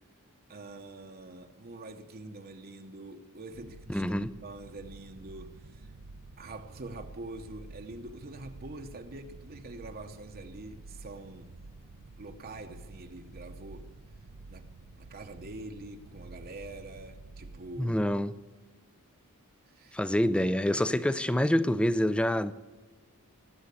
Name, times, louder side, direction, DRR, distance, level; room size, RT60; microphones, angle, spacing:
voice 1, 0.5-4.0 4.4-5.9 6.4-11.5 12.2-13.9 14.5-14.7 15.0-18.0 19.7-20.0, right 2 dB, 45° right, 0.9 m, -45 dB
sound 1, 3.5-17.9, right 3 dB, 70° right, 0.7 m, -50 dB
voice 2, 3.9-4.3 17.8-18.3 19.9-22.5, equal, 5° left, 0.4 m, -26 dB
20.0 x 7.8 x 8.3 m
head